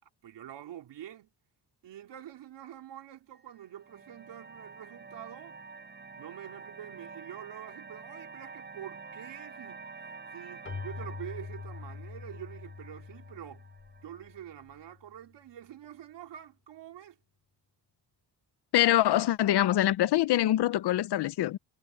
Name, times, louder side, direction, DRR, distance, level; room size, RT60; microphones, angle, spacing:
voice 1, 0.0-1.3 1.8-5.6 6.2-9.9 10.3-13.7 14.0-17.2, right 11 dB, 80° right, 3.4 m, -46 dB
sound 1, 3.3-14.4, right 4 dB, 25° right, 7.2 m, -48 dB
Keyboard (musical), 10.6-15.1, left 5 dB, 30° left, 2.9 m, -44 dB
voice 2, 18.7-21.6, left 13 dB, 70° left, 0.7 m, -24 dB
wide cardioid pair, 160°, 42 cm